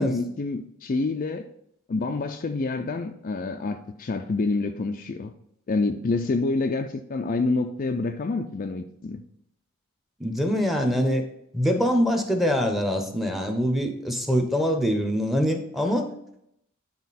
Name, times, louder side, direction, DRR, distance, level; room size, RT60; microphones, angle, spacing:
voice 1, 0.0-1.5 1.9-5.3 5.7-9.2, left 3 dB, 40° left, 6 dB, 0.4 m, -27 dB
voice 2, 10.2-11.2 11.5-16.1, equal, ahead, 4 dB, 0.8 m, -24 dB
9.4 x 4.4 x 4.1 m, 0.75 s
head